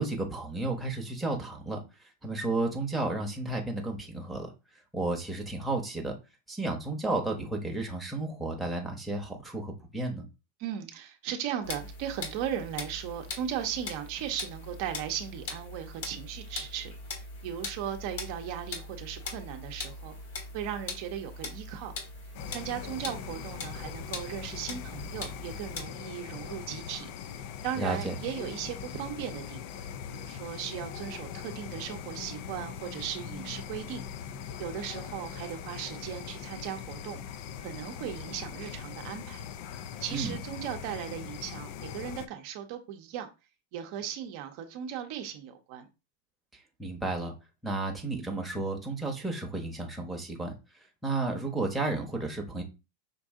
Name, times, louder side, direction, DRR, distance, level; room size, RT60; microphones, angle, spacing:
voice 1, 0.0-1.8 2.2-4.5 4.9-6.2 6.5-10.3 27.8-28.1 40.1-40.4 46.8-47.3 47.6-50.5 51.0-52.6, right 2 dB, ahead, 0.9 m, -32 dB
voice 2, 10.6-20.1 20.5-21.9 22.5-27.1 27.6-34.0 34.6-37.2 37.6-39.4 40.0-43.3 43.7-45.9, right 9 dB, 50° right, 0.7 m, -37 dB
sound 1, 11.6-25.8, left 3 dB, 65° left, 1.4 m, -41 dB
sound 2, 22.3-42.3, left 8 dB, 45° left, 0.4 m, -41 dB
5.3 x 2.6 x 3.6 m
supercardioid pair, 155°, 0 cm